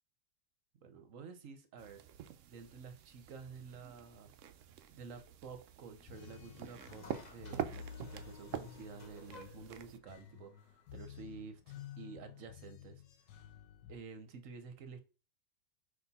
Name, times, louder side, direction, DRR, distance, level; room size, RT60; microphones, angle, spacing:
voice 1, 0.8-2.0 2.5-4.3 4.9-7.0 7.3-13.0 13.9-15.0, right 5 dB, 55° right, 1.0 m, -51 dB
sound 1, 1.8-10.0, right 10 dB, 80° right, 0.6 m, -47 dB
sound 2, 5.9-13.9, left 8 dB, 75° left, 1.3 m, -52 dB
sound 3, 6.3-11.6, left 2 dB, 40° left, 0.6 m, -59 dB
5.2 x 4.3 x 4.1 m
omnidirectional pair, 1.9 m